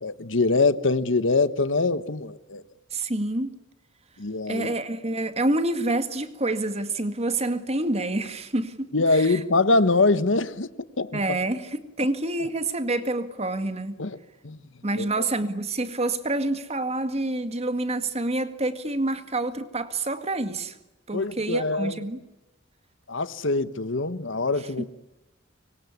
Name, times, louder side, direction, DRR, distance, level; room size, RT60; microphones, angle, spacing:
voice 1, 0.0-2.6 4.2-4.7 8.9-11.2 14.0-14.2 14.4-14.6 15.0-15.3 21.1-22.0 23.1-24.8, left 3 dB, 70° left, 1.3 m, -24 dB
voice 2, 2.9-3.6 4.5-9.4 11.1-14.0 14.8-20.8 21.1-22.2 24.8-24.9, right 2 dB, 30° right, 2.0 m, -27 dB
25.0 x 24.5 x 9.7 m
head